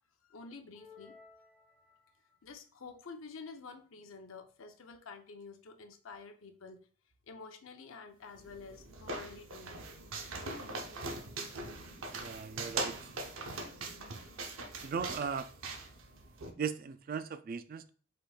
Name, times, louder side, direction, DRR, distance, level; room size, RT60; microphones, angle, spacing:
voice 1, 0.3-1.2 2.4-6.8 7.3-9.8, left 4 dB, 85° left, 6 dB, 0.6 m, -49 dB
sound 1, 0.7-2.4, left 5 dB, 10° left, 1.1 m, -58 dB
sound 2, 8.3-16.5, right 3 dB, 85° right, 0.7 m, -41 dB
voice 2, 12.1-13.1 14.8-15.5 16.6-17.9, right 6 dB, 45° right, 11 dB, 0.3 m, -38 dB
5.2 x 4.0 x 2.3 m, 0.42 s
head